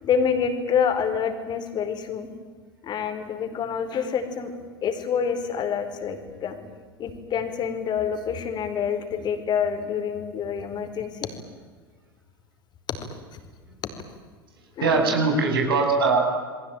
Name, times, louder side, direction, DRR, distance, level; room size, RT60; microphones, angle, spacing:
voice 1, 0.0-2.3 2.8-4.5 4.8-6.6 7.0-11.3 14.8-15.2, left 7 dB, 35° left, 7 dB, 4.6 m, -27 dB
voice 2, 14.8-16.2, right 4 dB, 75° right, 2 dB, 7.2 m, -21 dB
28.5 x 22.0 x 9.1 m, 1.5 s
figure-of-eight pair, 80°, 12 cm